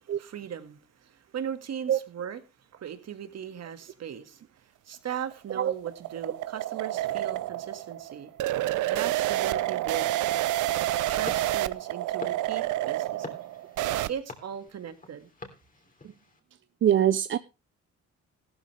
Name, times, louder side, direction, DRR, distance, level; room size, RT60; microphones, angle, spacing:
voice 1, 0.1-2.4 2.7-4.4 4.8-8.3 8.8-10.6 11.1-13.3 14.1-15.3, right 8 dB, 60° right, 1.8 m, -38 dB
sound 1, 5.1-14.1, right 15 dB, 80° right, 0.6 m, -29 dB
sound 2, 11.2-16.4, left 3 dB, 25° left, 3.1 m, -46 dB
voice 2, 16.8-17.4, right 10 dB, 40° right, 0.5 m, -22 dB
14.5 x 13.0 x 3.2 m
cardioid pair, 90°, 30 cm